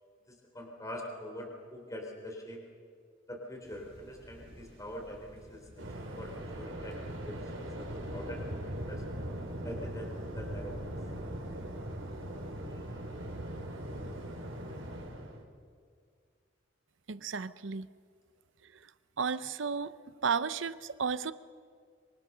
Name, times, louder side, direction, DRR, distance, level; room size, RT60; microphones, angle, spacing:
voice 1, 0.3-2.6 3.3-9.1 9.6-10.9 12.7-12.8, equal, 15° left, 1 dB, 3.6 m, -44 dB
sound 1, 3.6-15.1, equal, 35° right, 5.2 m, -52 dB
Waves surf, 5.8-15.4, right 1 dB, 85° right, 3.7 m, -40 dB
voice 2, 17.1-17.9 19.2-19.9 20.2-21.3, right 5 dB, 70° right, 15 dB, 0.8 m, -33 dB
25.0 x 25.0 x 6.8 m, 2.1 s
head